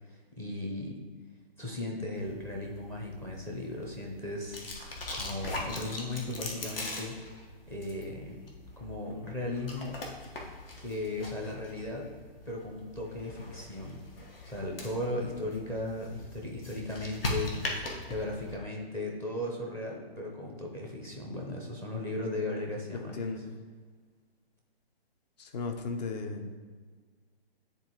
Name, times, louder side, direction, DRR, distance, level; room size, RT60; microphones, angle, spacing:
voice 1, 0.4-1.0 1.6-4.6 5.1-7.2 7.7-8.4 8.8-10.0 10.8-12.1 12.5-14.0 14.5-17.5 18.1-23.2, left 1 dB, 10° left, -1 dB, 0.6 m, -36 dB
sound 1, 2.1-18.6, left 2 dB, 65° left, 1.4 m, -41 dB
voice 2, 23.1-23.4 25.4-26.5, left 4 dB, 45° left, 5 dB, 0.8 m, -35 dB
9.8 x 3.8 x 3.0 m, 1.5 s
figure-of-eight pair, 135°, 30 cm